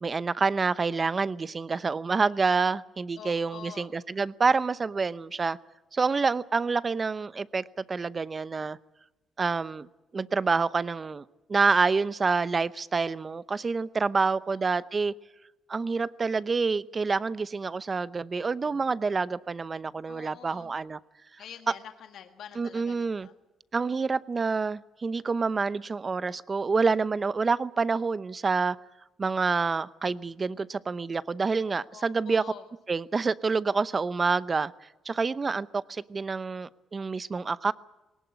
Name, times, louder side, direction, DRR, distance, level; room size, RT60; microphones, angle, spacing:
voice 1, 0.0-5.6 5.9-8.8 9.4-9.9 10.1-11.2 11.5-15.1 15.7-21.0 22.6-23.3 23.7-28.8 29.2-32.4 32.9-34.7 35.1-37.7, right 4 dB, 35° right, 17 dB, 0.7 m, -27 dB
voice 2, 3.2-4.0 14.2-14.6 20.1-20.8 21.4-23.3 31.9-32.6, left 8 dB, 70° left, 7 dB, 1.5 m, -46 dB
20.0 x 18.5 x 9.6 m, 1.0 s
cardioid pair, 90°, 0 cm